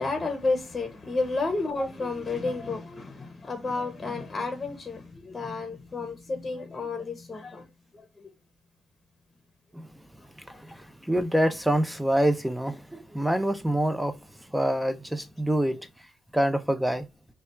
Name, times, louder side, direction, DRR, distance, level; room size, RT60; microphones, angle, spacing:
voice 1, 0.0-7.7 7.9-8.3, left 3 dB, 30° left, 0.8 m, -31 dB
voice 2, 10.5-10.8 11.1-14.1 14.5-15.8 16.3-17.1, right 1 dB, 5° right, 0.5 m, -26 dB
3.3 x 2.4 x 4.2 m
cardioid pair, 90°, 0 cm